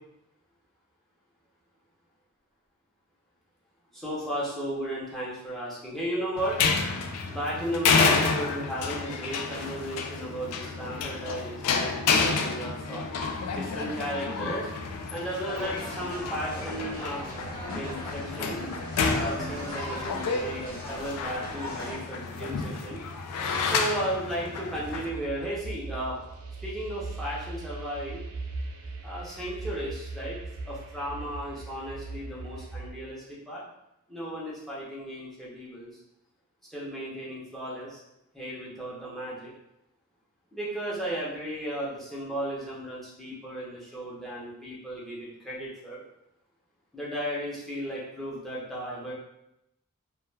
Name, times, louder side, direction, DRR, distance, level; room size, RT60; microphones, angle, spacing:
voice 1, 3.9-6.6 7.3-13.0 13.5-14.7 15.1-17.2 17.7-18.6 19.1-23.0 23.6-26.2 26.6-28.2 29.0-33.6 34.1-35.9 36.7-38.0 38.3-39.5 40.5-46.0 46.9-49.1, right 1 dB, ahead, -8 dB, 0.5 m, -35 dB
sound 1, 6.4-25.1, left 4 dB, 90° left, 0.3 m, -30 dB
sound 2, 15.4-22.0, equal, 25° left, 0.8 m, -40 dB
sound 3, 24.7-32.9, right 3 dB, 70° right, 0.4 m, -39 dB
2.2 x 2.1 x 3.1 m, 0.85 s
head